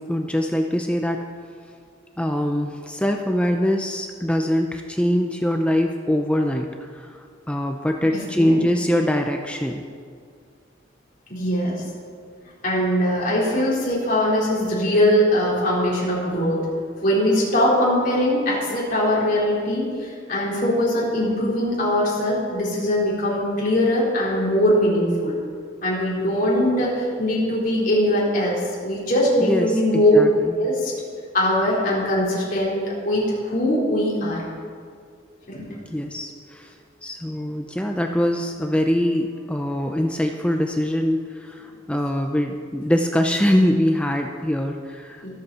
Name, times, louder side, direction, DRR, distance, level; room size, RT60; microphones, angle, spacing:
voice 1, 0.1-1.2 2.2-9.8 29.4-30.6 35.9-36.8 37.0-45.3, equal, 5° left, 3 dB, 0.5 m, -23 dB
voice 2, 8.1-8.6 11.3-11.8 12.6-16.6 17.0-25.3 25.8-30.1 30.6-30.9 31.3-34.4 35.5-35.8 45.2-45.3, left 1 dB, 45° left, -5 dB, 4.1 m, -21 dB
24.0 x 8.1 x 4.3 m, 2.1 s
head